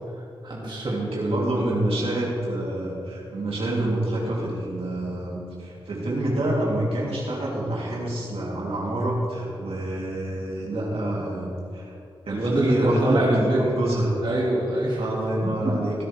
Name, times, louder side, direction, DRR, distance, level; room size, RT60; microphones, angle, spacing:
voice 1, 0.1-1.8 12.3-13.6 14.2-15.1 15.4-15.9, right 1 dB, 50° right, -5 dB, 2.4 m, -25 dB
voice 2, 0.9-11.9 12.2-14.1 15.0-16.0, right 1 dB, 85° right, -5 dB, 3.1 m, -27 dB
17.5 x 10.5 x 3.4 m, 2.7 s
cardioid pair, 65°, 10 cm